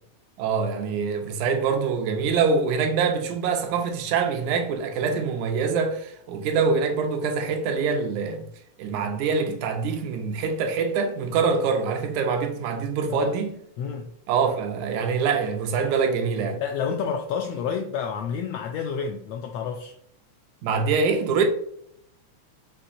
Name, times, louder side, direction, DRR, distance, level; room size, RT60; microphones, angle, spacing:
voice 1, 0.4-8.5 8.8-13.5 14.3-16.6 20.6-21.4, right 5 dB, 85° right, 2.1 m, -24 dB
voice 2, 13.8-14.1 16.6-19.9, left 6 dB, 85° left, 1.4 m, -29 dB
5.9 x 3.1 x 2.6 m
omnidirectional pair, 3.4 m